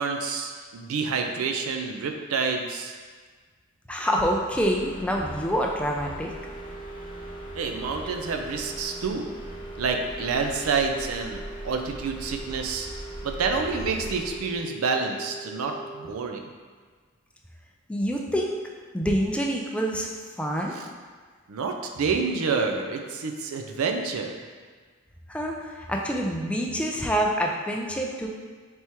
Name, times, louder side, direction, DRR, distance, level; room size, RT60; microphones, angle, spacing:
voice 1, 0.0-2.9 7.5-9.3 9.8-12.9 13.2-16.4 20.7-20.9 21.5-24.3, right 5 dB, 80° right, 4 dB, 0.4 m, -28 dB
voice 2, 3.9-6.3 17.9-18.6 18.9-20.1 20.4-20.7 25.3-28.3, equal, 5° left, 0 dB, 0.3 m, -26 dB
sound 1, 4.5-14.6, equal, 25° left, 0.8 m, -41 dB
sound 2, 6.1-16.1, right 4 dB, 25° right, 0.8 m, -42 dB
4.4 x 3.4 x 2.9 m, 1.5 s
head